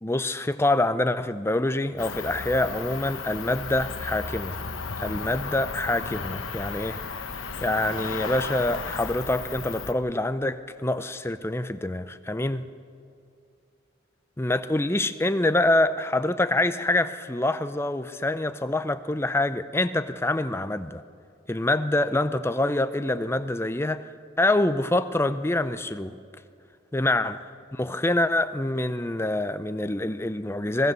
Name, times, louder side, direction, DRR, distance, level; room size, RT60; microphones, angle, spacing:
voice 1, 0.0-4.6 5.0-7.0 7.6-12.6 14.4-21.0 21.5-24.0 24.4-26.2 26.9-27.4 27.7-30.9, left 1 dB, 10° left, 11 dB, 0.5 m, -25 dB
Cricket, 2.0-9.9, left 5 dB, 75° left, 1.1 m, -34 dB
24.5 x 17.5 x 6.7 m, 2.4 s
head